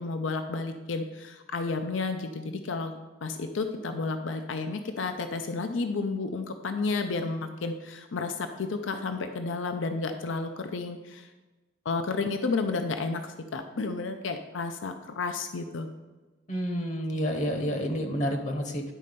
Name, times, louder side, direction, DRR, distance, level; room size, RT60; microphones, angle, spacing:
voice 1, 0.0-2.9 3.2-11.3 11.8-15.9, left 3 dB, 80° left, 7 dB, 0.5 m, -31 dB
voice 2, 16.5-18.8, equal, 40° left, 5 dB, 0.9 m, -29 dB
10.0 x 4.2 x 5.2 m, 1.2 s
head